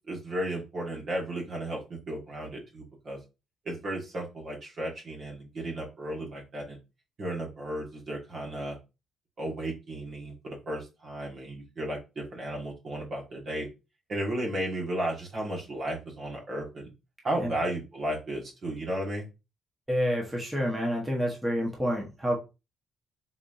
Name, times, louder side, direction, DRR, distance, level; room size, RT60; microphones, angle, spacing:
voice 1, 0.1-3.2 3.6-6.8 7.2-8.8 9.4-13.7 14.1-16.9 17.2-19.2, right 1 dB, 55° right, -1 dB, 1.6 m, -34 dB
voice 2, 19.9-22.4, equal, 15° right, -2 dB, 1.1 m, -28 dB
4.1 x 3.3 x 2.6 m, 0.27 s
cardioid pair, 90°, 0 cm